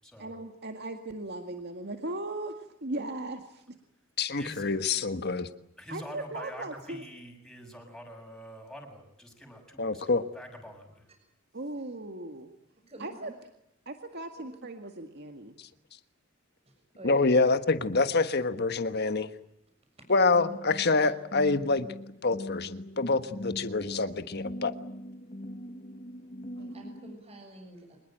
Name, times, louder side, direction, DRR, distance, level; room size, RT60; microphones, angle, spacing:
voice 1, 0.2-3.8 5.9-7.0 11.5-12.5 13.0-13.3 13.9-15.5 21.0-21.1 26.6-26.7, right 2 dB, 55° right, 6 dB, 2.0 m, -38 dB
voice 2, 4.2-5.5 9.8-10.2 17.0-19.3 20.1-21.9 22.2-24.7, left 3 dB, 55° left, 11 dB, 1.4 m, -26 dB
voice 3, 5.8-11.0, equal, 5° left, 2 dB, 6.9 m, -46 dB
voice 4, 12.8-13.3 16.6-17.3 20.0-20.1 26.2-26.3 26.7-28.0, right 1 dB, 30° right, 3 dB, 6.8 m, -48 dB
sound 1, 20.3-27.2, equal, 40° left, 1.5 m, -42 dB
25.5 x 21.0 x 9.0 m, 0.81 s
head